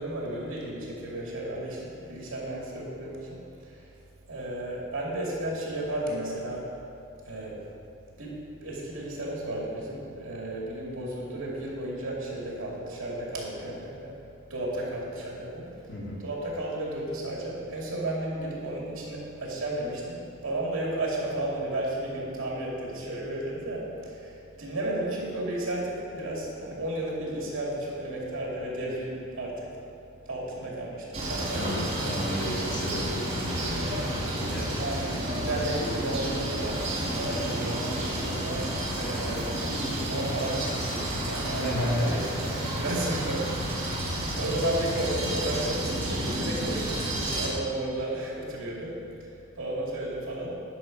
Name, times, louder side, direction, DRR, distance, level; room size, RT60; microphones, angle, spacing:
voice 1, 0.0-3.9 4.3-6.6 7.3-7.6 8.2-14.2 14.5-15.7 16.2-29.7 30.3-32.3 34.8-38.7 39.0-50.5, right 1 dB, 70° right, -4 dB, 2.5 m, -33 dB
voice 2, 15.9-16.2 31.5-34.7 41.5-42.2, equal, 55° left, -6 dB, 2.4 m, -33 dB
sound 1, 31.1-47.5, right 1 dB, 30° right, 2.1 m, -31 dB
10.5 x 6.2 x 5.2 m, 2.6 s
head